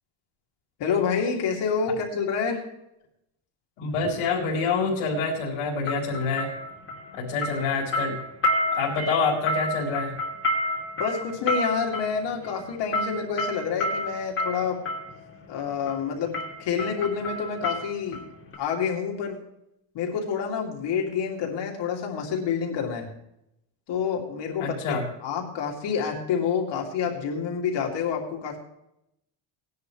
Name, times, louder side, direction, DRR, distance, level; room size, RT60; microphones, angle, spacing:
voice 1, 0.8-2.6 11.0-14.8 15.5-18.2 18.6-19.4 19.9-23.1 23.9-28.6, left 6 dB, 60° left, 1 dB, 2.8 m, -28 dB
voice 2, 3.8-6.5 7.1-8.2 8.7-10.1 24.6-25.0, left 4 dB, 80° left, -4 dB, 3.9 m, -26 dB
sound 1, 3.9-4.1 5.9-7.2 7.4-15.1 15.9-16.1 16.3-18.2 18.5-18.6, left 1 dB, 25° left, 2.5 m, -30 dB
19.0 x 11.0 x 3.3 m, 0.82 s
cardioid pair, 175°, 49 cm